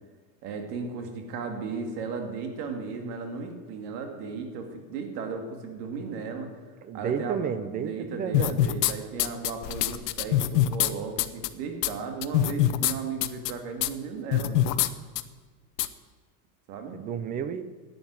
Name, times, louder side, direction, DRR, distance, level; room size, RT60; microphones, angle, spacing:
voice 1, 0.4-6.5 6.9-7.4 7.7-14.7 16.7-17.0, right 5 dB, 75° right, 4 dB, 2.6 m, -35 dB
voice 2, 6.8-8.7 16.9-17.6, right 7 dB, 20° right, 13 dB, 0.4 m, -31 dB
sound 1, 8.3-8.9 9.2-10.9 11.2-11.5 11.8-11.9 12.2-12.9 13.2-13.5 13.8-13.9 14.3-14.9 15.2-15.3 15.8-15.9, left 13 dB, 85° left, 1.0 m, -23 dB
11.5 x 9.4 x 9.6 m, 1.5 s
supercardioid pair, 155°, 47 cm